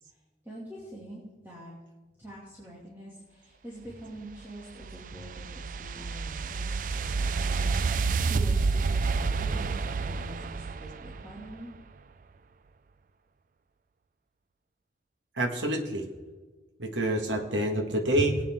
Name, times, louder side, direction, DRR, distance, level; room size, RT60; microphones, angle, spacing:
voice 1, 0.4-1.7 2.2-11.7, right 1 dB, 10° right, -7 dB, 2.4 m, -45 dB
sound 1, 4.3-11.6, right 4 dB, 45° right, 0.4 m, -29 dB
voice 2, 15.4-16.0 16.8-18.4, right 1 dB, 90° right, 4 dB, 1.8 m, -27 dB
21.0 x 8.6 x 3.7 m, 1.3 s
head